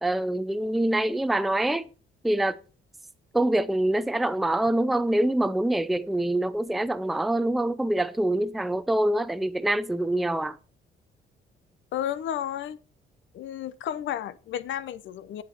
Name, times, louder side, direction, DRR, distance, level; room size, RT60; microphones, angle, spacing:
voice 1, 0.0-1.9 2.2-2.6 3.3-10.6, right 1 dB, ahead, 0.5 m, -25 dB
voice 2, 11.9-12.8 13.3-15.4, left 10 dB, 70° left, 0.8 m, -32 dB
8.3 x 7.4 x 4.5 m
cardioid pair, 90°, 20 cm